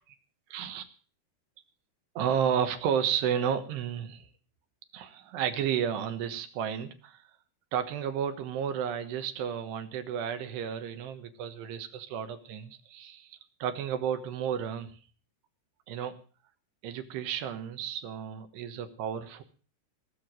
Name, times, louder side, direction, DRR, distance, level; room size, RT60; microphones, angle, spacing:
voice 1, 0.5-0.9 2.2-4.3 4.9-7.3 7.7-15.0 15.9-16.2 16.8-19.4, right 8 dB, 85° right, 8 dB, 3.4 m, -32 dB
18.5 x 6.9 x 7.6 m, 0.40 s
omnidirectional pair, 4.8 m